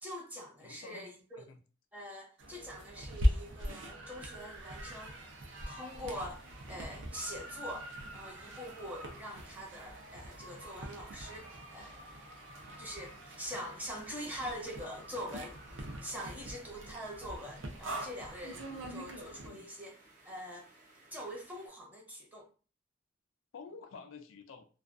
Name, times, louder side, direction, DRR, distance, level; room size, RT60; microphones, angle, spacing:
voice 1, 0.0-1.4 1.9-6.4 6.7-12.0 12.8-15.6 16.0-19.9 20.2-20.7 21.1-22.5, equal, 10° right, -1 dB, 0.7 m, -44 dB
voice 2, 0.6-1.1 1.4-1.6 18.5-19.0 19.4-19.7 23.5-24.7, left 4 dB, 90° left, 7 dB, 0.4 m, -50 dB
sound 1, 2.4-19.5, equal, 70° right, 0.5 m, -40 dB
sound 2, 4.1-21.7, right 2 dB, 40° right, 0.8 m, -61 dB
2.4 x 2.2 x 2.4 m, 0.37 s
head